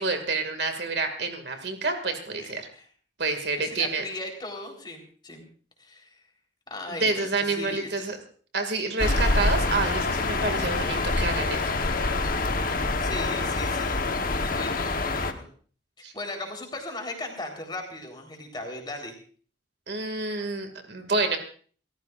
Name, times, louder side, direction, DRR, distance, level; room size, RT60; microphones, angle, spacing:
voice 1, 0.0-2.7 3.2-4.0 6.9-8.2 8.5-11.7 16.0-16.1 19.9-21.4, right 3 dB, 55° right, 6 dB, 2.3 m, -28 dB
voice 2, 3.6-5.4 5.8-6.1 6.7-7.9 9.0-9.1 13.0-15.5 16.1-19.1, left 2 dB, 25° left, 2 dB, 4.0 m, -37 dB
sound 1, 9.0-15.3, left 3 dB, 45° left, 1.2 m, -26 dB
29.0 x 14.5 x 2.5 m, 0.43 s
head